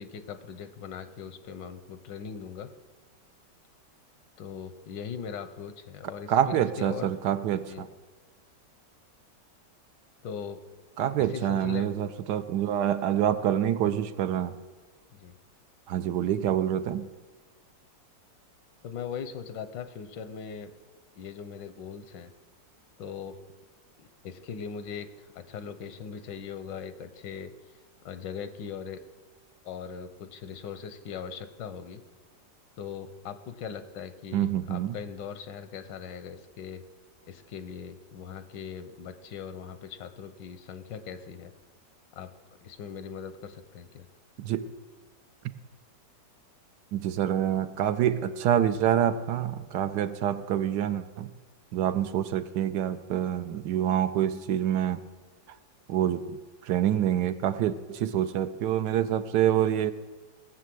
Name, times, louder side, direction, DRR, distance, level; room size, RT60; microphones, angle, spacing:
voice 1, 0.0-2.7 4.4-7.1 7.7-7.9 10.2-10.6 11.2-11.9 15.2-15.4 18.8-20.7 21.2-22.3 23.0-23.3 24.0-27.5 28.0-29.0 29.6-32.0 32.8-36.8 37.3-41.5 42.1-42.3 42.6-44.1, left 7 dB, 80° left, 10 dB, 1.5 m, -40 dB
voice 2, 6.3-7.9 11.0-14.6 15.9-17.1 34.3-35.0 44.4-44.7 46.9-51.3 51.7-55.0 55.9-59.9, right 10 dB, 75° right, 11 dB, 1.2 m, -26 dB
18.0 x 6.4 x 7.7 m, 1.3 s
omnidirectional pair, 1.9 m